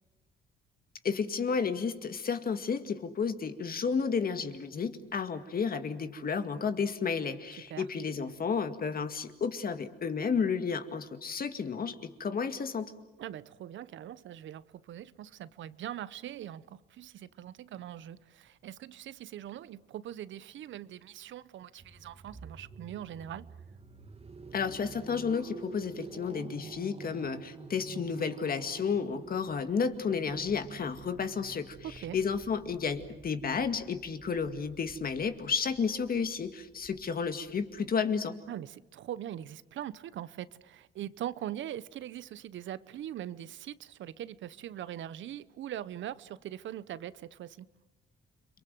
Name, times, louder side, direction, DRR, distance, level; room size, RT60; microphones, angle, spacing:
voice 1, 1.0-12.9 24.5-38.4, left 6 dB, 45° left, 2.1 m, -32 dB
voice 2, 13.2-23.6 31.8-32.2 38.5-47.7, right 11 dB, 70° right, 0.9 m, -42 dB
sound 1, 21.8-38.0, right 4 dB, 30° right, 1.8 m, -49 dB
30.0 x 23.5 x 7.8 m
cardioid pair, 90°, 20 cm